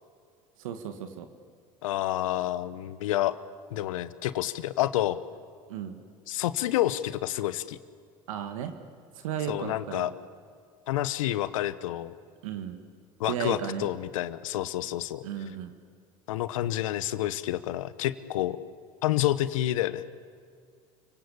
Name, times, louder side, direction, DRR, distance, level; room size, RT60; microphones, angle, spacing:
voice 1, 0.6-1.3 5.7-6.0 8.3-8.7 9.1-10.1 12.4-12.8 13.3-13.9 15.2-15.7, right 9 dB, 80° right, 7 dB, 1.7 m, -34 dB
voice 2, 1.8-3.4 3.7-5.2 6.3-7.8 9.5-10.1 10.9-12.1 13.2-15.2 16.3-18.6 19.0-20.0, left 14 dB, 85° left, 14 dB, 1.0 m, -29 dB
29.5 x 18.0 x 8.5 m, 2.2 s
hypercardioid pair, 75°, 17 cm